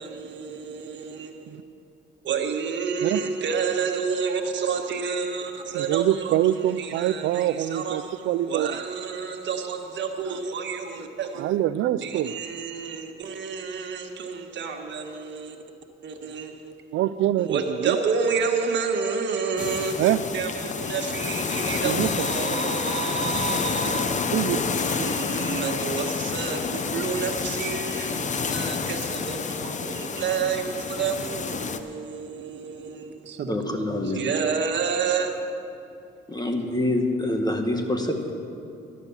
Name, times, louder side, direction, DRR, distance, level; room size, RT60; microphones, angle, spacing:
voice 1, 0.0-1.6 2.2-11.4 12.0-15.6 16.0-16.7 17.4-35.4, right 5 dB, 65° right, 3 dB, 1.6 m, -30 dB
voice 2, 5.7-8.8 10.3-10.4 11.3-12.4 16.9-18.0 20.0-20.2 21.8-22.3 24.1-24.6 25.0-25.1, right 13 dB, 80° right, 16 dB, 0.5 m, -25 dB
sound 1, 19.6-31.8, left 5 dB, 40° left, 0.8 m, -29 dB
voice 3, 33.5-34.2 36.3-38.3, left 1 dB, 20° left, 4 dB, 1.8 m, -26 dB
12.0 x 11.0 x 7.2 m, 2.7 s
cardioid pair, 90°, 20 cm